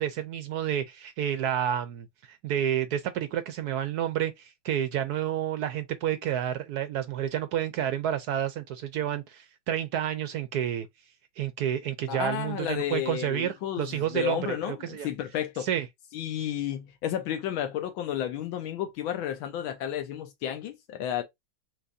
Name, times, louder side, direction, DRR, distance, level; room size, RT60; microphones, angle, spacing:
voice 1, 0.0-10.9 11.4-15.1 15.6-15.9, right 10 dB, 75° right, 0.9 m, -30 dB
voice 2, 12.1-15.7 16.1-21.2, left 10 dB, 85° left, 1.5 m, -32 dB
6.1 x 2.8 x 2.6 m
omnidirectional pair, 2.1 m